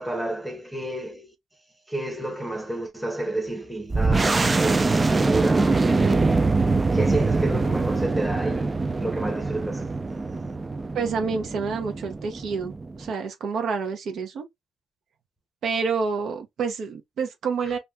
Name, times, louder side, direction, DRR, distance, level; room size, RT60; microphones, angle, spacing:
voice 1, 0.0-1.3 1.9-6.6 6.9-9.9, right 2 dB, 5° right, 0.8 m, -30 dB
sound 1, 3.9-13.1, right 3 dB, 25° right, 0.3 m, -23 dB
voice 2, 10.9-14.5 15.6-17.8, right 5 dB, 70° right, 0.8 m, -28 dB
2.5 x 2.2 x 3.3 m
cardioid pair, 90°, 0 cm